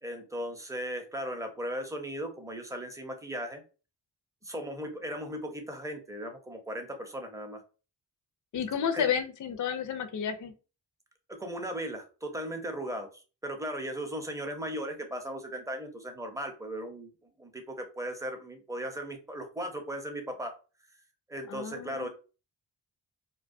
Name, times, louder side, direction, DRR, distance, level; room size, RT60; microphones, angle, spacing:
voice 1, 0.0-3.6 4.4-7.6 8.9-9.1 11.3-17.1 17.4-20.5 21.3-22.1, equal, 10° right, 4 dB, 0.5 m, -37 dB
voice 2, 8.5-10.5 21.5-22.1, left 8 dB, 45° left, 8 dB, 0.4 m, -31 dB
2.2 x 2.2 x 2.5 m, 0.34 s
cardioid pair, 75°, 43 cm